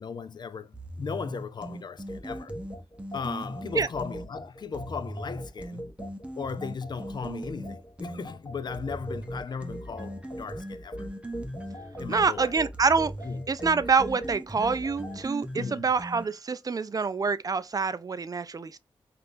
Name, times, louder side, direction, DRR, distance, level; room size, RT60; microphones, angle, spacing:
voice 1, 0.0-2.5 3.1-5.9 6.4-11.1 12.0-12.5 13.2-13.4 15.5-15.9, left 5 dB, 50° left, 0.3 m, -37 dB
sound 1, 0.7-4.3 4.7-8.3 8.7-16.5, right 1 dB, 10° right, 0.7 m, -39 dB
sound 2, 2.1-15.2, equal, 30° left, 1.2 m, -41 dB
voice 2, 12.1-13.1 13.5-18.8, right 5 dB, 40° right, 0.3 m, -26 dB
3.4 x 2.4 x 2.5 m
supercardioid pair, 40°, 10 cm